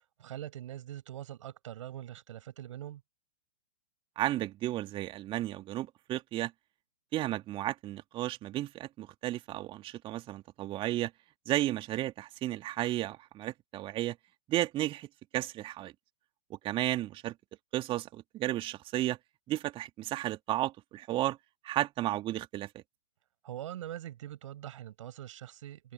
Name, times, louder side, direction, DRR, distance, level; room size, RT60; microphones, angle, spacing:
voice 1, 0.2-3.0 23.4-25.9, right 12 dB, 60° right, 6.9 m, -43 dB
voice 2, 4.2-6.5 7.1-11.1 11.5-14.2 14.5-15.1 15.3-15.9 16.5-17.3 17.7-19.2 19.5-21.4 21.6-22.7, right 14 dB, 30° right, 2.5 m, -33 dB
figure-of-eight pair, 110°, 18 cm